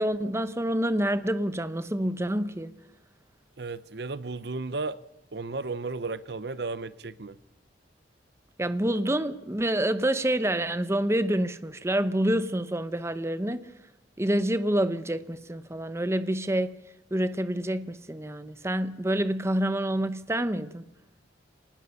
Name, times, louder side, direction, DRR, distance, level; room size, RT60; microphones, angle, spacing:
voice 1, 0.0-2.7 8.6-13.6 14.2-16.7 17.1-20.8, right 1 dB, 15° right, 0.8 m, -27 dB
voice 2, 3.6-5.0 5.3-7.4, right 3 dB, 60° right, 0.7 m, -34 dB
25.5 x 19.5 x 7.0 m
head